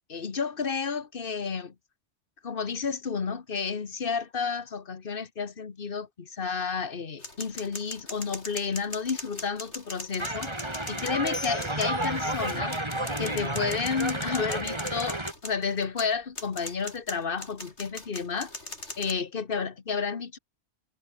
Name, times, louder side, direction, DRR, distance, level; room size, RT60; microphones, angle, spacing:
voice 1, 0.1-1.7 2.4-10.5 10.9-12.8 13.2-18.5 19.0-20.4, left 5 dB, 50° left, 1.6 m, -31 dB
sound 1, 7.2-19.1, left 2 dB, 75° left, 6.7 m, -41 dB
sound 2, 10.2-15.3, right 1 dB, 25° right, 3.4 m, -31 dB
omnidirectional pair, 1.2 m